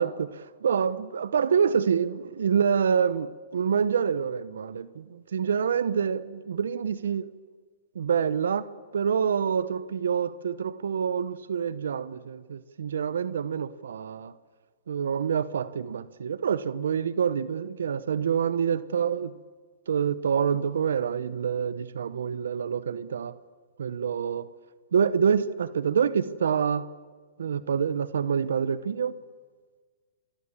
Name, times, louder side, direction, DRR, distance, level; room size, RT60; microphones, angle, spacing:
voice 1, 0.0-7.3 7.9-14.3 14.9-19.3 19.9-23.3 23.8-24.5 24.9-26.9 27.4-29.1, right 7 dB, 80° right, 1.0 m, -27 dB
27.0 x 21.0 x 7.3 m
hypercardioid pair, 125°, 0 cm